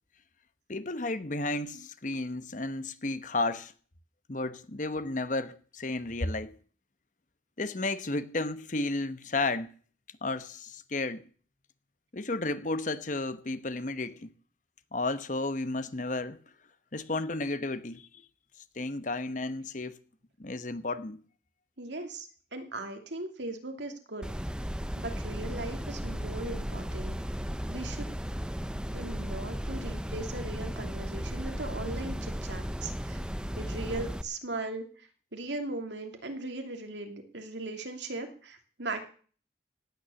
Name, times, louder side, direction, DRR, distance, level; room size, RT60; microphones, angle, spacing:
voice 1, 0.7-3.7 4.3-6.6 7.6-9.7 10.2-11.2 12.1-14.3 14.9-16.4 16.9-18.2 18.7-20.0 20.4-21.2, left 2 dB, 45° left, 1.1 m, -33 dB
voice 2, 21.8-24.3 25.0-27.2 27.7-28.1 28.9-33.2 33.6-39.1, right 2 dB, 80° right, 2.8 m, -38 dB
sound 1, 24.2-34.2, equal, 5° right, 0.8 m, -35 dB
17.5 x 9.7 x 7.0 m
head